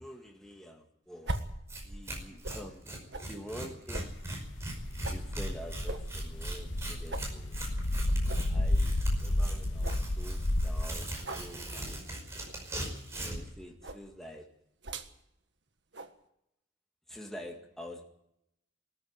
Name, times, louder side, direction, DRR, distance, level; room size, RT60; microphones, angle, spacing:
voice 1, 0.0-1.3 1.8-4.2 5.1-7.6 8.4-12.0 13.2-14.5 17.1-18.0, equal, ahead, 1 dB, 2.0 m, -47 dB
sound 1, 1.2-2.7 3.1-3.3 3.9-5.3 5.9-6.8 7.1-7.3 7.7-7.8 8.3-8.5 9.0-9.1 9.4-9.5 9.8-10.1 11.2-11.5 12.4-12.7 13.8-14.1 14.8-15.1 15.9-16.1, right 2 dB, 65° right, 1.7 m, -40 dB
Tearing, 1.3-1.4 1.7-1.8 2.1-13.5, right 1 dB, 15° right, 5.3 m, -40 dB
sound 2, 3.9-10.8, left 1 dB, 75° left, 1.6 m, -31 dB
20.0 x 14.0 x 9.8 m, 0.80 s
head